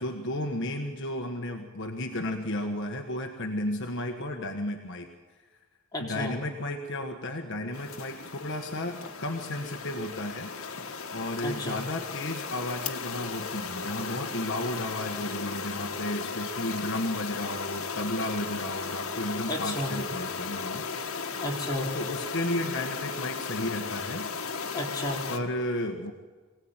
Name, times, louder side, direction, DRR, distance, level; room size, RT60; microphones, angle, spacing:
voice 1, 0.0-5.1 6.0-10.5 11.1-20.8 21.9-24.3 25.3-26.1, left 1 dB, 55° left, 4 dB, 1.5 m, -33 dB
voice 2, 5.9-6.3 11.4-11.8 19.5-19.9 21.4-21.9 24.7-25.3, left 1 dB, 20° left, -3 dB, 4.1 m, -32 dB
sound 1, 7.7-25.4, left 5 dB, 75° left, 1.8 m, -36 dB
24.0 x 17.5 x 9.0 m, 1.4 s
head